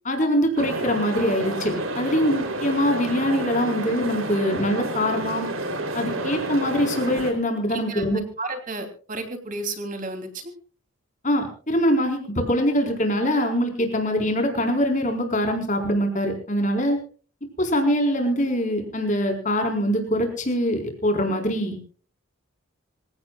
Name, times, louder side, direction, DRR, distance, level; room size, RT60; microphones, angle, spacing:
voice 1, 0.0-5.5 5.9-8.2 11.2-17.0 17.6-21.8, equal, 35° left, 4 dB, 4.3 m, -23 dB
sound 1, 0.6-7.3, right 1 dB, 80° right, 3.4 m, -29 dB
voice 2, 7.7-8.1 8.4-10.5, right 2 dB, 40° right, 6 dB, 3.1 m, -32 dB
26.5 x 16.5 x 2.4 m, 0.40 s
head